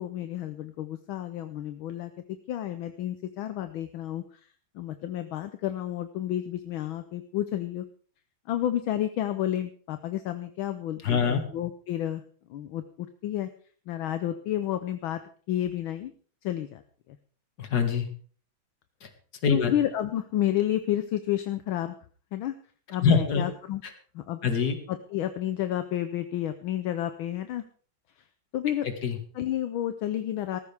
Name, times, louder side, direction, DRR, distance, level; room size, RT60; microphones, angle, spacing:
voice 1, 0.0-2.1 2.5-4.2 4.7-7.8 8.5-12.2 12.5-13.5 13.9-15.2 15.5-16.1 16.4-16.8 19.5-21.9 22.3-22.5 22.9-23.8 24.1-24.4 24.9-27.6 28.5-28.9 29.3-30.6, left 12 dB, 75° left, 10 dB, 1.5 m, -30 dB
voice 2, 11.0-11.4 17.6-18.1 19.0-19.1 19.4-19.7 23.0-23.4 24.4-24.8 28.8-29.2, left 6 dB, 50° left, 6 dB, 2.2 m, -24 dB
18.0 x 14.5 x 3.5 m, 0.43 s
omnidirectional pair, 2.3 m